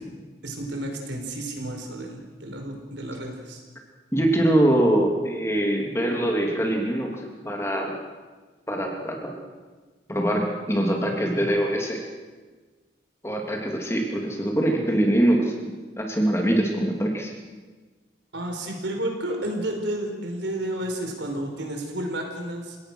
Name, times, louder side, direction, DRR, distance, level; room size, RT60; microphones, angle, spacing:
voice 1, 0.4-3.6 18.3-22.8, right 1 dB, 90° right, 3 dB, 5.1 m, -31 dB
voice 2, 4.1-8.0 8.7-9.4 10.1-12.0 13.2-15.7 16.0-17.3, right 1 dB, 15° left, 0 dB, 3.0 m, -23 dB
30.0 x 18.0 x 6.4 m, 1.4 s
head